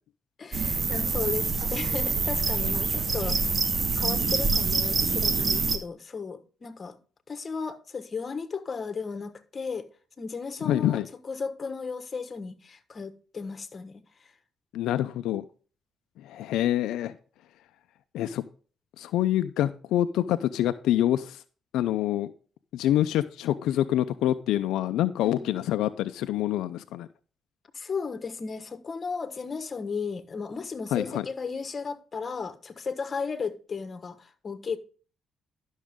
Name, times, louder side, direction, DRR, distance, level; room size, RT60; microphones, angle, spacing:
voice 1, 0.4-3.6 4.0-7.0 7.3-9.9 10.2-14.0 25.2-25.7 27.7-34.8, left 5 dB, 35° left, 1.3 m, -35 dB
sound 1, 0.5-5.8, right 4 dB, 40° right, 1.2 m, -26 dB
voice 2, 10.6-11.1 14.7-15.4 16.2-17.2 18.1-18.4 19.0-21.4 21.7-22.3 22.7-27.1 30.9-31.2, left 12 dB, 85° left, 0.5 m, -26 dB
12.0 x 6.3 x 3.6 m
cardioid pair, 90°, 0 cm